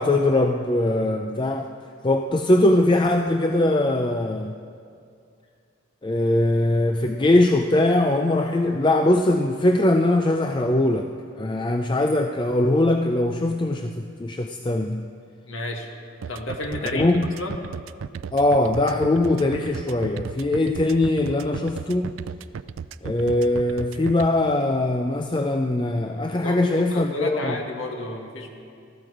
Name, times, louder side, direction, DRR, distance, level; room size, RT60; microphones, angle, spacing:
voice 1, 0.0-1.7 2.0-4.6 6.0-11.1 11.4-15.1 16.9-17.3 18.3-22.1 23.0-27.6, left 1 dB, 25° left, 5 dB, 0.4 m, -21 dB
voice 2, 15.4-15.9 16.3-17.1 17.4-17.5 26.4-28.5, left 1 dB, 85° left, 2 dB, 1.8 m, -31 dB
sound 1, 16.2-24.3, right 6 dB, 90° right, 0.4 m, -34 dB
20.5 x 14.0 x 4.9 m, 2.3 s
head